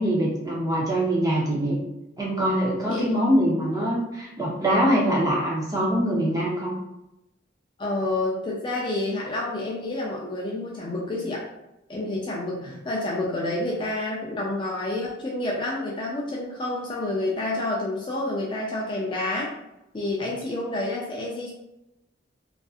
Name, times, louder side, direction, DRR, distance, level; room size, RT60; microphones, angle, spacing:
voice 1, 0.0-1.8 2.2-6.7, equal, 20° right, -5 dB, 0.6 m, -23 dB
voice 2, 7.8-11.5 11.9-19.5 19.9-21.5, left 2 dB, 25° left, -4 dB, 0.3 m, -29 dB
2.6 x 2.3 x 2.3 m, 0.90 s
head